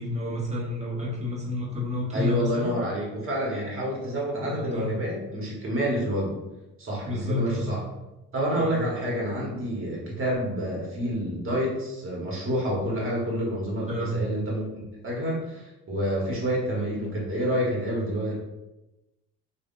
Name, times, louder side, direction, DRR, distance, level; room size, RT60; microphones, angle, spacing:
voice 1, 0.0-2.7 4.4-5.0 7.0-7.7 8.6-8.8 13.9-14.2, left 2 dB, 20° right, -4 dB, 1.2 m, -30 dB
voice 2, 2.1-6.4 6.8-7.8 8.3-18.4, equal, 40° right, -3 dB, 1.3 m, -28 dB
3.4 x 2.4 x 2.5 m, 0.99 s
supercardioid pair, 80°, 33 cm